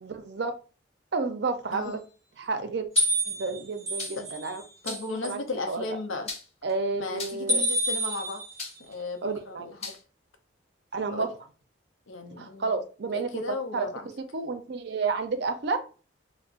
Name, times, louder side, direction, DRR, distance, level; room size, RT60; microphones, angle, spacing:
voice 1, 0.0-0.5 1.1-2.0 2.4-2.9 3.3-4.6 4.9-5.0 5.2-5.4 5.7-5.8 6.6-7.6 9.2-9.7 10.9-11.3 12.4-13.9 14.3-15.8, right 4 dB, 60° right, 0.4 m, -30 dB
sound 1, 3.0-3.3 4.0-4.3 4.9-5.2 6.3-6.7 7.2-7.6 8.6-9.0 9.8-10.0, left 4 dB, 30° left, 0.5 m, -38 dB
sound 2, 3.0-4.5 4.9-5.3 7.5-8.7, right 1 dB, 15° right, 0.6 m, -28 dB
voice 2, 4.8-6.3 7.0-8.4 8.8-10.0 11.1-11.3 12.1-12.7 13.1-14.1, left 3 dB, 85° left, 0.6 m, -35 dB
2.4 x 2.0 x 3.7 m
head